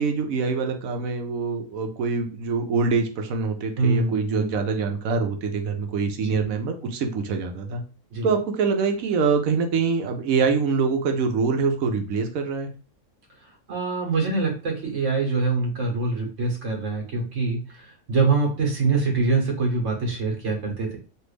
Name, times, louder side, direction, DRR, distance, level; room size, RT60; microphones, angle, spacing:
voice 1, 0.0-7.8 8.2-12.7, right 5 dB, 75° right, 5 dB, 1.1 m, -24 dB
voice 2, 3.8-4.6 6.2-6.4 8.1-8.3 13.7-21.0, right 3 dB, 55° right, 0 dB, 1.4 m, -24 dB
3.3 x 2.5 x 3.2 m, 0.35 s
omnidirectional pair, 1.5 m